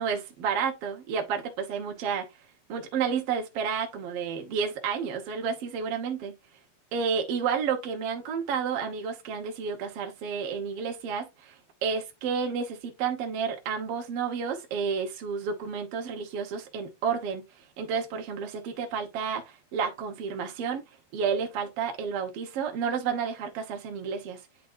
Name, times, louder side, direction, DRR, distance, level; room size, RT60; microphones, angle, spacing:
voice 1, 0.0-2.3 2.7-6.4 6.9-17.4 17.8-20.8 21.1-24.4, right 6 dB, 75° right, 1.3 m, -31 dB
10.0 x 3.9 x 2.5 m
omnidirectional pair, 4.5 m